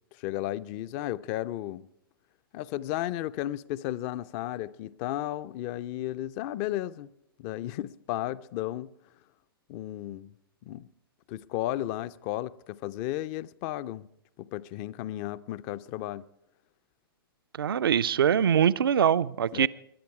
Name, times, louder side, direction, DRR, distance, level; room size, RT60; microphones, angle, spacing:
voice 1, 0.1-1.9 2.5-7.1 7.4-8.9 9.7-10.3 10.6-10.9 11.3-14.1 14.4-16.3 19.5-19.7, left 14 dB, 35° left, 0.5 m, -34 dB
voice 2, 17.6-19.7, right 8 dB, 70° right, 0.5 m, -23 dB
21.5 x 10.5 x 4.8 m
hypercardioid pair, 115°, 12 cm